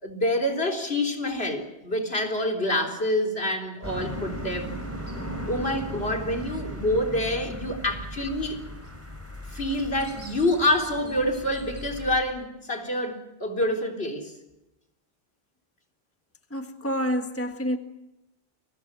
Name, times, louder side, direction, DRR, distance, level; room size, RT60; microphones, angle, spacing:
voice 1, 0.0-4.7 5.5-8.6 9.5-14.3, left 1 dB, 70° left, 7 dB, 4.1 m, -27 dB
sound 1, 3.8-12.2, equal, 15° right, 6.6 m, -37 dB
voice 2, 16.5-17.8, equal, 15° left, 5 dB, 1.6 m, -28 dB
29.5 x 24.0 x 6.1 m, 0.92 s
omnidirectional pair, 1.1 m